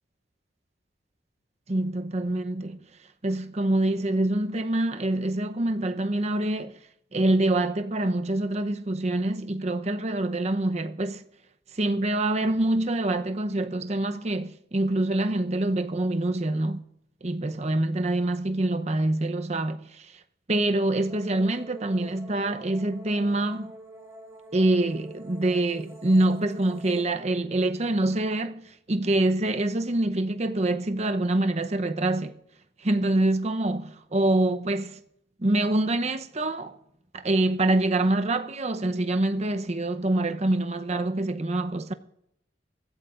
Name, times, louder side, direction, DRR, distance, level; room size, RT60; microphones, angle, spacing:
voice 1, 1.7-2.9 3.2-6.8 7.1-11.2 11.7-16.8 17.2-20.1 20.5-23.8 24.5-28.6 28.9-32.4 32.8-35.0 35.4-36.7 37.1-41.9, right 2 dB, 35° right, 0.7 m, -25 dB
sound 1, 21.1-27.0, equal, 15° right, 2.8 m, -47 dB
24.5 x 15.5 x 2.5 m
head